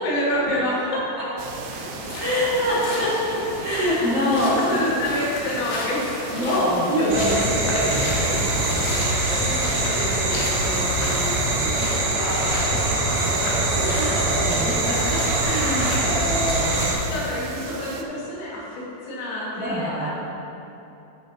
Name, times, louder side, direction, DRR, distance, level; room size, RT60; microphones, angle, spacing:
voice 1, 0.0-0.9 4.4-6.4 13.8-14.1 17.0-20.1, left 1 dB, 85° left, -7 dB, 4.7 m, -28 dB
sound 1, 1.4-18.0, right 5 dB, 85° right, 3.2 m, -37 dB
sound 2, 1.7-16.9, left 2 dB, 70° left, 3.0 m, -33 dB
voice 2, 2.2-4.8 6.3-13.1 13.4-15.0 15.4-17.2 19.6-20.1, equal, 50° right, -11 dB, 2.0 m, -26 dB
sound 3, 7.1-16.9, right 2 dB, 70° right, 3.9 m, -23 dB
16.5 x 6.4 x 2.9 m, 2.9 s
omnidirectional pair, 5.7 m